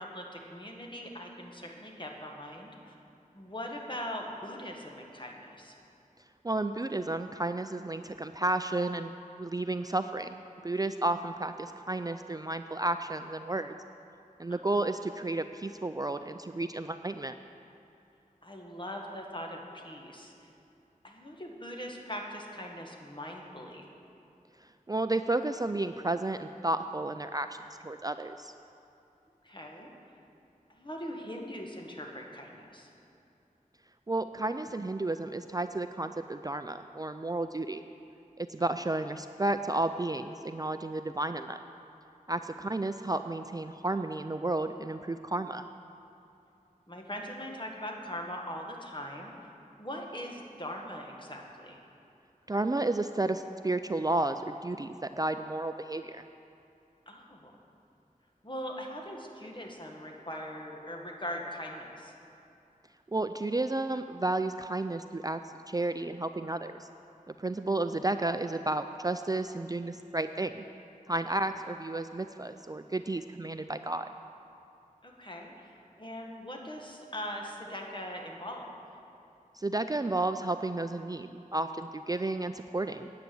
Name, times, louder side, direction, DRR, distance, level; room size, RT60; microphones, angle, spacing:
voice 1, 0.0-3.0 3.3-5.7 11.2-11.3 14.5-14.6 18.4-20.5 21.0-23.9 29.4-29.9 30.7-32.9 46.9-49.3 49.8-51.8 57.1-57.6 58.4-62.1 71.2-71.4 75.0-78.8, equal, 35° left, 0 dB, 1.7 m, -41 dB
voice 2, 6.4-9.1 9.4-13.7 14.4-17.3 24.9-27.6 27.8-28.5 34.1-37.8 38.4-41.6 42.3-45.7 52.5-56.2 63.1-66.9 67.4-70.6 71.1-74.1 79.5-83.1, right 2 dB, 25° right, 9 dB, 0.4 m, -32 dB
9.8 x 9.1 x 7.8 m, 2.7 s
wide cardioid pair, 45°, 14 cm